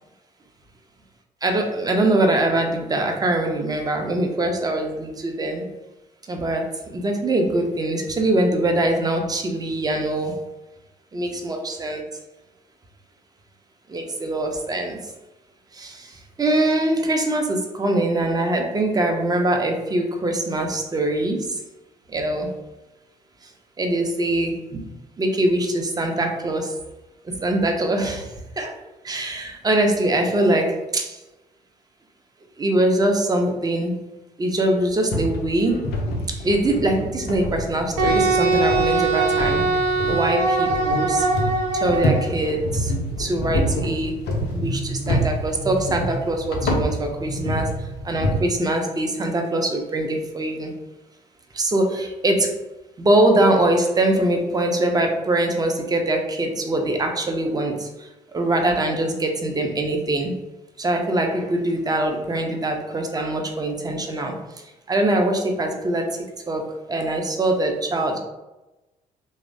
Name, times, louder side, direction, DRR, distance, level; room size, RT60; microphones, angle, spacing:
voice 1, 1.4-5.6 6.3-10.4 11.1-12.0 13.9-15.0 15.7-16.1 16.4-21.6 22.1-22.5 23.8-24.9 25.2-26.7 27.3-28.3 28.6-28.7 29.0-31.2 32.6-34.0 34.4-35.9 36.4-39.7 40.1-41.3 41.8-42.9 43.2-44.1 44.5-47.7 48.0-50.7 51.5-52.5 53.0-57.9 58.3-60.3 60.8-64.4 64.9-66.2 66.5-68.2, right 1 dB, 20° right, 3 dB, 0.5 m, -23 dB
sound 1, 35.1-48.4, equal, 55° left, 0.5 m, -27 dB
Wind instrument woodwind instrument, 38.0-42.3, right 3 dB, 70° right, 0.4 m, -21 dB
3.1 x 2.0 x 2.5 m, 1.0 s
figure-of-eight pair, 45°, 20 cm